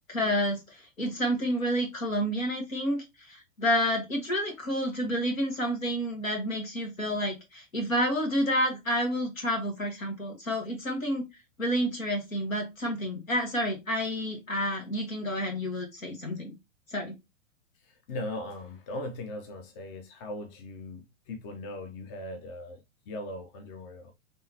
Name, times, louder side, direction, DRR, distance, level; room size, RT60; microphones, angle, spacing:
voice 1, 0.1-11.2 11.6-16.5 16.9-17.1, equal, 85° left, 1.6 m, -29 dB
voice 2, 17.9-22.8 23.1-24.1, left 1 dB, 40° left, 0.9 m, -39 dB
3.7 x 3.2 x 2.9 m
figure-of-eight pair, 100°, 40 cm